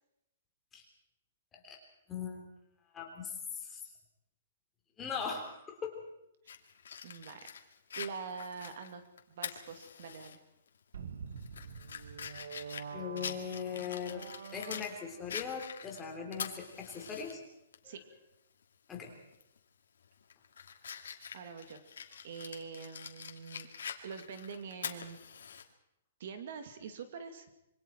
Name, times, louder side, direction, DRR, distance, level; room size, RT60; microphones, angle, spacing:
voice 1, 2.1-2.4 2.9-3.8 5.0-6.0 12.9-17.4 17.8-18.0 18.9-19.1, left 6 dB, 10° left, 0 dB, 3.5 m, -40 dB
Fire, 6.5-10.4 10.7-10.8 11.4-14.9 15.3-17.3 17.7-17.8 19.3-19.6 20.0-25.6, left 7 dB, 85° left, 2.6 m, -45 dB
voice 2, 7.0-7.5 8.0-9.0 9.3-10.4 17.8-18.0 21.3-21.8 22.2-23.7 24.0-25.2 26.2-27.5, right 6 dB, 50° right, 8 dB, 2.3 m, -44 dB
sound 1, 10.9-15.4, right 6 dB, 75° right, 1.6 m, -46 dB
26.5 x 24.0 x 4.6 m, 0.81 s
hypercardioid pair, 175°, 0 cm